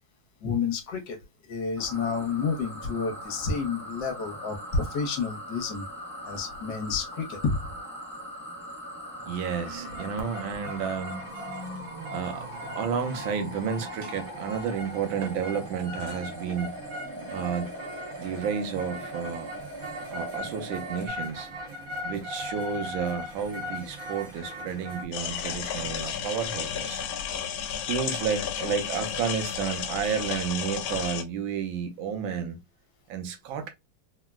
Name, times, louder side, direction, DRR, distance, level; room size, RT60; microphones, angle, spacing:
voice 1, 0.4-1.2 1.5-5.8 6.2-7.6, left 5 dB, 70° left, 1.4 m, -30 dB
sound 1, 1.8-21.1, equal, 25° right, 0.7 m, -41 dB
voice 2, 9.3-11.2 12.1-12.5 12.8-16.7 17.3-17.7 18.2-19.5 20.1-21.5 22.0-27.0 27.9-32.6 33.1-33.7, right 7 dB, 80° right, 1.4 m, -31 dB
sound 2, 9.5-25.1, equal, 55° right, 1.3 m, -39 dB
sound 3, 25.1-31.2, left 8 dB, 85° left, 1.4 m, -32 dB
3.7 x 2.1 x 2.2 m
omnidirectional pair, 2.2 m